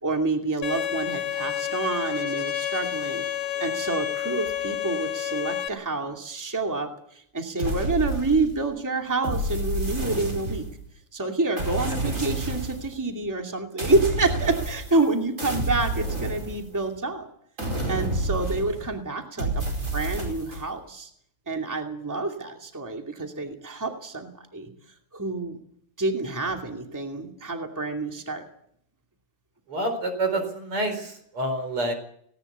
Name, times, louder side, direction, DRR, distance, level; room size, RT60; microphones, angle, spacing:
voice 1, 0.0-10.7 11.1-17.3 17.9-21.1 21.5-24.7 25.1-25.6 26.0-28.4, right 3 dB, 10° right, 3 dB, 2.4 m, -28 dB
Bowed string instrument, 0.6-5.7, left 11 dB, 75° left, 2.2 m, -29 dB
sound 1, 7.6-8.7 9.2-10.9 11.6-12.9 13.8-15.1 15.4-17.0 17.6-18.9 19.4-20.6, right 2 dB, 35° right, 5.4 m, -29 dB
voice 2, 29.7-31.9, right 1 dB, 80° right, 7 dB, 5.4 m, -27 dB
18.5 x 18.0 x 8.2 m, 0.67 s
omnidirectional pair, 2.4 m